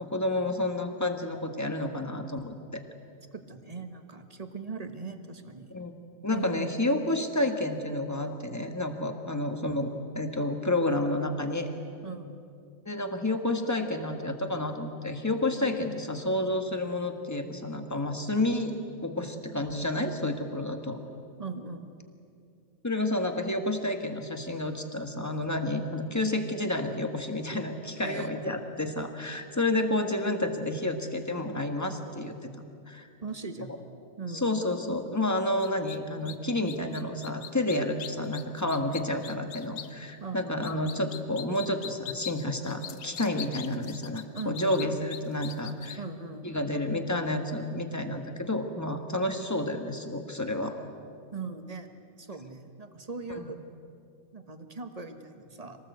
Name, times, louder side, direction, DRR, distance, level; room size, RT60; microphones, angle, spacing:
voice 1, 0.0-2.8 5.7-5.9 6.2-9.9 10.1-11.7 12.8-21.0 22.8-32.5 32.9-33.1 34.3-46.0 46.4-50.8 53.3-53.5, left 1 dB, 10° left, 5 dB, 1.4 m, -30 dB
voice 2, 3.3-5.7 6.3-6.8 12.0-12.3 21.4-21.9 28.0-28.6 33.2-33.7 34.2-34.4 40.2-40.6 44.3-44.8 46.0-46.5 51.3-51.9 52.2-53.6 54.3-55.9, right 4 dB, 25° right, 7 dB, 1.2 m, -39 dB
sound 1, 35.6-36.0 36.2-36.4 36.7-39.9 40.6-46.0, left 9 dB, 60° left, 1.0 m, -41 dB
25.5 x 19.0 x 8.1 m, 2.5 s
omnidirectional pair, 1.9 m